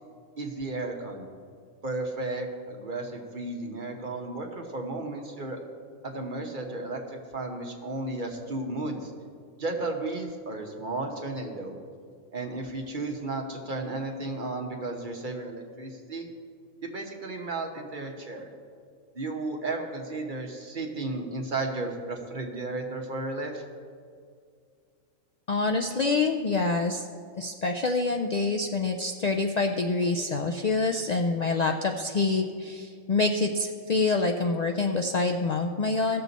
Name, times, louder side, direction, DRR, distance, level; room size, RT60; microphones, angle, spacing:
voice 1, 0.4-1.3 1.8-5.6 6.0-9.1 9.6-11.8 12.3-16.3 16.8-18.5 19.1-23.6, right 2 dB, 40° right, 2 dB, 1.2 m, -34 dB
voice 2, 25.5-27.0 27.4-36.2, left 3 dB, 80° left, 4 dB, 0.3 m, -26 dB
16.5 x 6.7 x 4.0 m, 2.1 s
omnidirectional pair, 1.4 m